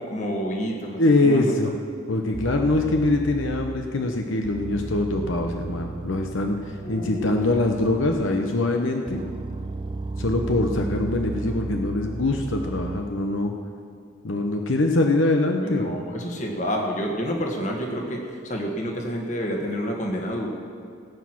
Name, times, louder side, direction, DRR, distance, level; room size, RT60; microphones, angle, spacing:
voice 1, 0.0-1.5 6.8-7.4 15.6-20.5, equal, 40° left, 1 dB, 1.7 m, -29 dB
voice 2, 1.0-1.8 2.1-9.2 10.2-13.5 14.2-15.9, left 2 dB, 80° left, 3 dB, 0.9 m, -23 dB
sound 1, 2.3-4.0 4.4-8.6 9.1-13.2, right 3 dB, 25° right, 0.3 m, -34 dB
17.5 x 8.3 x 6.1 m, 2.3 s
head